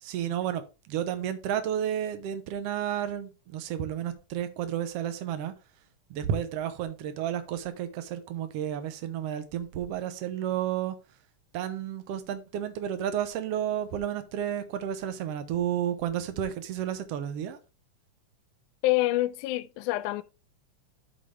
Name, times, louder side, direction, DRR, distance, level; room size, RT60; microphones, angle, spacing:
voice 1, 0.0-5.5 6.1-11.0 11.5-17.6, right 10 dB, 70° right, 1.5 m, -32 dB
voice 2, 18.8-20.2, left 17 dB, 80° left, 2.0 m, -26 dB
11.0 x 4.9 x 3.4 m
omnidirectional pair, 3.8 m